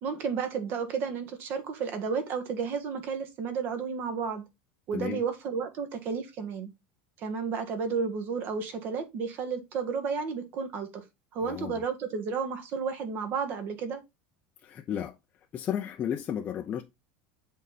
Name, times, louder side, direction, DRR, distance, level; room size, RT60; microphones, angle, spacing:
voice 1, 0.0-4.4 4.9-6.7 7.2-11.0 11.3-14.0, right 5 dB, 45° right, 1.5 m, -32 dB
voice 2, 4.9-5.2 11.4-11.8 14.6-15.2 15.5-16.8, left 9 dB, 30° left, 0.6 m, -33 dB
7.3 x 4.0 x 4.1 m
supercardioid pair, 155°, 5 cm